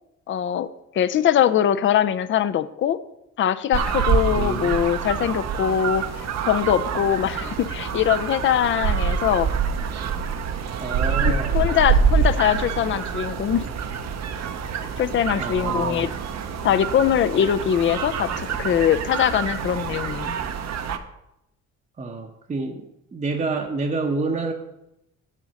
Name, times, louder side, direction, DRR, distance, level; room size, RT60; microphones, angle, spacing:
voice 1, 0.3-0.7 0.9-3.0 3.4-6.0 6.5-9.5 11.2-13.7 15.0-16.1 16.6-20.4, left 9 dB, 40° left, 13 dB, 0.4 m, -22 dB
sound 1, 3.7-21.0, right 6 dB, 60° right, 0.7 m, -26 dB
voice 2, 4.3-4.8 10.8-11.7 15.4-16.1 22.0-24.5, right 3 dB, 25° right, 2 dB, 0.7 m, -28 dB
7.4 x 4.0 x 6.4 m, 0.86 s
cardioid pair, 90°, 30 cm